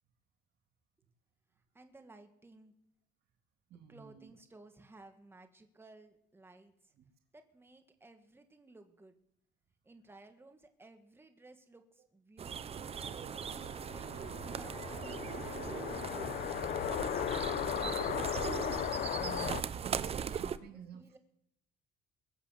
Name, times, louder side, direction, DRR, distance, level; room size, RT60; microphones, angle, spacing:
voice 1, 1.7-2.7 3.9-6.9 7.3-9.1 9.8-13.0 13.8-18.6 20.5-21.2, right 2 dB, 15° right, 6 dB, 2.0 m, -58 dB
voice 2, 3.7-4.3 7.0-7.1 19.2-21.2, right 7 dB, 70° right, 5 dB, 2.2 m, -50 dB
sound 1, 12.4-20.6, right 7 dB, 35° right, 0.8 m, -39 dB
sound 2, 12.8-19.6, left 11 dB, 55° left, 0.8 m, -37 dB
22.5 x 7.5 x 7.7 m, 0.75 s
cardioid pair, 110°, 17 cm